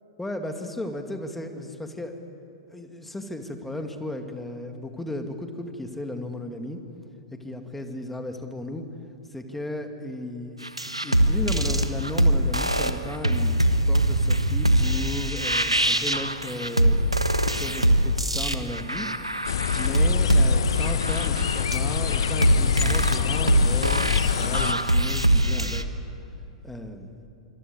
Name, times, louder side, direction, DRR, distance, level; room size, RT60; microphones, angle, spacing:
voice 1, 0.2-2.1 2.7-6.8 7.3-8.9 9.3-10.7 11.0-13.5 13.9-17.0 17.5-19.1 19.8-25.9 26.6-27.1, left 1 dB, 5° left, 5 dB, 2.4 m, -35 dB
sound 1, 10.6-25.8, right 1 dB, 85° right, 1.4 m, -23 dB
sound 2, 19.4-24.7, left 7 dB, 60° left, 1.1 m, -25 dB
26.0 x 25.5 x 8.3 m, 2.8 s
figure-of-eight pair, 100°, 3 cm